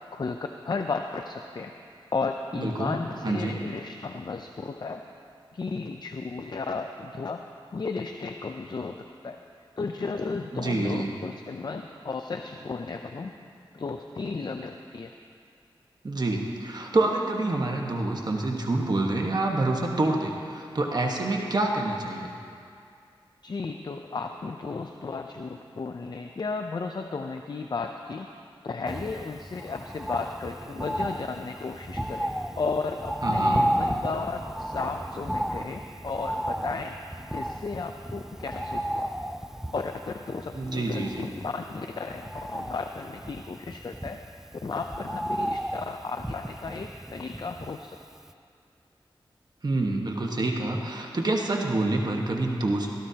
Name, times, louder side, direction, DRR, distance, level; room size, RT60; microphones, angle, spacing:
voice 1, 0.1-1.7 2.1-5.0 5.5-9.4 9.8-13.3 13.7-15.1 23.4-28.3 28.6-32.3 32.6-37.0 37.3-39.1 39.7-44.2 44.6-48.0, left 4 dB, 50° left, 5 dB, 0.5 m, -34 dB
voice 2, 2.5-3.0 3.2-3.6 10.5-11.2 16.0-22.3 33.2-33.7 40.5-41.3 49.6-53.0, right 2 dB, 45° right, 0 dB, 1.4 m, -27 dB
Bird, 28.9-48.0 48.3-48.4, equal, 5° right, 0.4 m, -33 dB
16.5 x 14.0 x 2.9 m, 2.4 s
cardioid pair, 55°, 9 cm